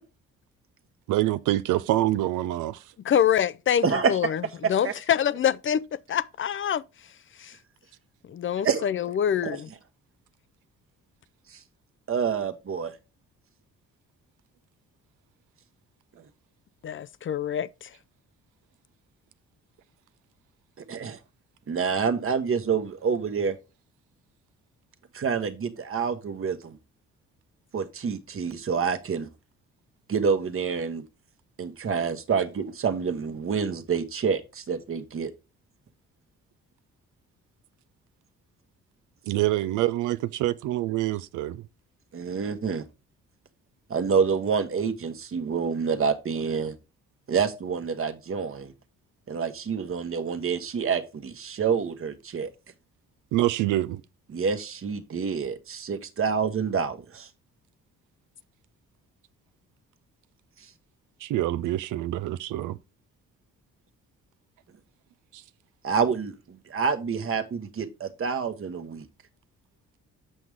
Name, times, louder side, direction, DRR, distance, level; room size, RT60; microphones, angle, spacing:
voice 1, 1.1-2.8 39.3-41.6 53.3-54.0 61.2-62.8, right 15 dB, 90° right, 0.5 m, -26 dB
voice 2, 3.0-4.4 4.7-6.8 7.4-7.5 8.3-9.7 16.8-17.9, left 9 dB, 40° left, 0.5 m, -25 dB
voice 3, 3.8-4.2 4.6-4.9 8.6-8.9 9.4-9.6 11.5-11.6 12.1-12.9 20.9-21.2 21.7-23.5 25.1-26.8 27.7-29.3 30.1-31.0 31.6-35.3 42.1-42.8 43.9-46.7 47.3-48.7 49.3-52.5 54.3-57.3 65.8-69.1, right 6 dB, 45° right, 1.3 m, -27 dB
7.7 x 6.3 x 3.5 m
cardioid pair, 90°, 30 cm